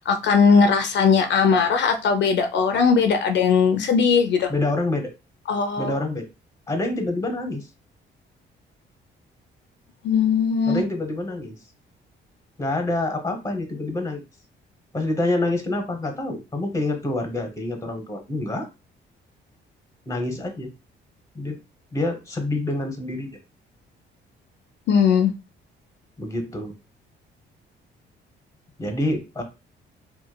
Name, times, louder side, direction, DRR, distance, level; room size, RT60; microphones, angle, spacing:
voice 1, 0.1-4.5 5.5-6.0 10.0-10.8 24.9-25.3, left 6 dB, 65° left, 5 dB, 0.4 m, -19 dB
voice 2, 4.5-5.1 5.8-6.3 6.7-7.7 10.6-11.6 12.6-14.2 14.9-18.7 20.1-20.7 21.3-21.6 21.9-23.3 26.2-26.7 28.8-29.4, left 2 dB, 15° left, 4 dB, 0.8 m, -27 dB
2.9 x 2.2 x 2.2 m, 0.28 s
cardioid pair, 90°, 20 cm